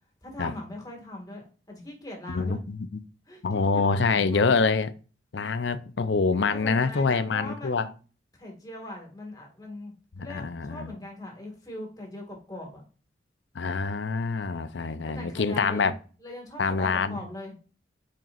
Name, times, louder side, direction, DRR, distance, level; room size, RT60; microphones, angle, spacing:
voice 1, 0.2-2.6 3.3-4.5 6.3-7.9 8.4-9.9 10.2-12.8 15.0-15.9 16.2-17.5, left 1 dB, 20° left, 1.8 m, -40 dB
voice 2, 2.3-2.8 3.4-4.9 5.3-7.9 10.2-10.9 13.5-15.9 16.6-17.2, left 4 dB, 75° left, 0.6 m, -25 dB
9.1 x 4.4 x 2.5 m
head